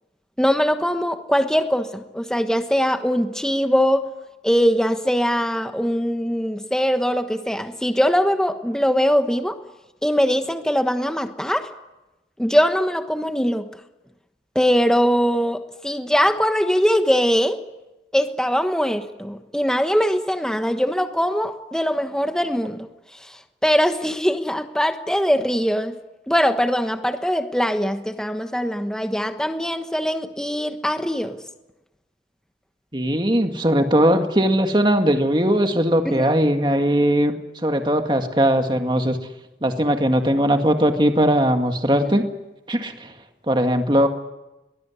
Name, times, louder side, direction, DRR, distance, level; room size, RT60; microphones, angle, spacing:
voice 1, 0.4-4.0 4.4-9.6 10.0-11.7 12.4-13.7 14.5-17.6 18.1-22.9 23.2-25.9 26.3-31.4 36.0-36.3 42.0-42.1, equal, 5° left, 7 dB, 1.2 m, -21 dB
voice 2, 32.9-37.3 37.6-39.2 39.6-42.3 42.7-43.1 43.5-44.1, equal, 25° right, 5 dB, 2.0 m, -19 dB
23.0 x 20.0 x 9.8 m, 1.0 s
head